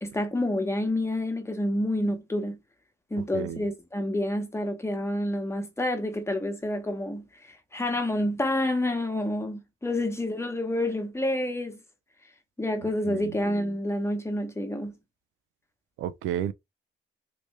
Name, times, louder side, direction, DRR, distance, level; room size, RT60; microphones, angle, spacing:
voice 1, 0.0-2.6 3.1-11.8 12.6-14.9, left 1 dB, 15° left, 1.0 m, -28 dB
voice 2, 16.0-16.5, right 10 dB, 85° right, 0.4 m, -31 dB
3.1 x 3.0 x 3.1 m
cardioid pair, 90°, 20 cm